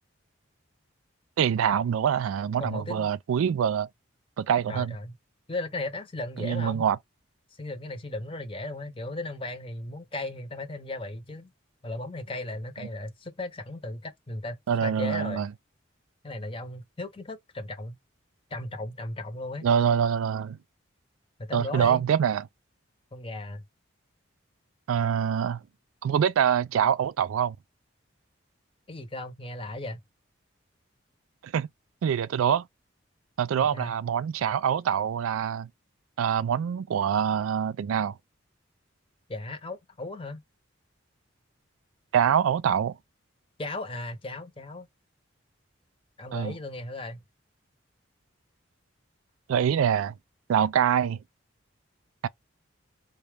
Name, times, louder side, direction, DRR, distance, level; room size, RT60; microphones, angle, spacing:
voice 1, 1.4-3.9 4.4-5.0 6.4-7.0 14.7-15.5 19.6-20.6 21.5-22.5 24.9-25.6 26.0-27.6 31.4-31.7 32.0-32.7 33.4-35.7 36.2-38.2 42.1-42.9 46.3-46.5 49.5-50.1 50.5-51.2 52.2-52.3, right 8 dB, 85° right, 0.3 m, -25 dB
voice 2, 2.6-3.1 4.7-5.1 5.5-6.8 7.6-11.5 11.8-15.4 16.2-18.0 18.5-19.7 21.4-22.0 23.1-23.6 28.9-30.0 33.5-34.0 39.3-40.4 43.6-44.9 46.2-47.2, left 2 dB, 25° left, 0.7 m, -36 dB
4.0 x 2.3 x 3.3 m
head